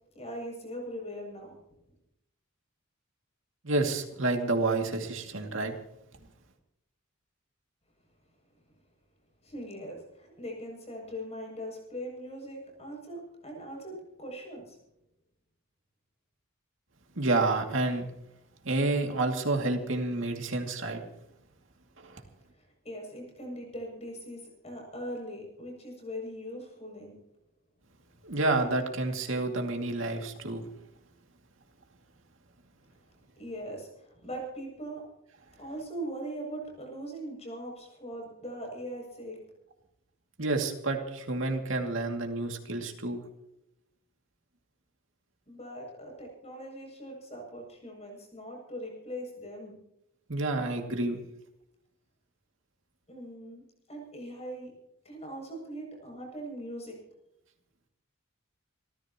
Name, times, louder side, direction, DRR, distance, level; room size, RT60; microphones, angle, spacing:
voice 1, 0.1-1.5 9.4-14.8 22.5-27.2 33.4-35.0 35.6-39.4 45.5-49.8 53.1-53.6 53.9-54.7 55.0-57.0, equal, 30° left, 0 dB, 7.5 m, -41 dB
voice 2, 3.6-5.7 17.2-18.1 18.6-21.0 22.0-22.2 28.2-30.6 40.4-43.2 50.3-51.2, right 2 dB, 65° right, 3 dB, 2.5 m, -29 dB
28.0 x 14.5 x 3.0 m, 0.82 s
head